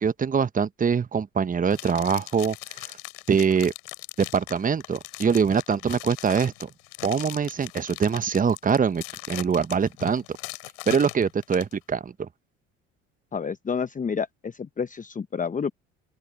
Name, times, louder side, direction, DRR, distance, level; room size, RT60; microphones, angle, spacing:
voice 1, 0.0-2.6 2.8-2.9 3.3-3.7 4.2-6.5 7.0-10.2 10.9-12.3, right 6 dB, 25° right, 1.0 m, -23 dB
sound 1, 1.7-11.7, left 31 dB, 80° left, 7.9 m, -39 dB
voice 2, 13.3-15.7, left 6 dB, 25° left, 0.9 m, -29 dB
open air
hypercardioid pair, 65°, 34 cm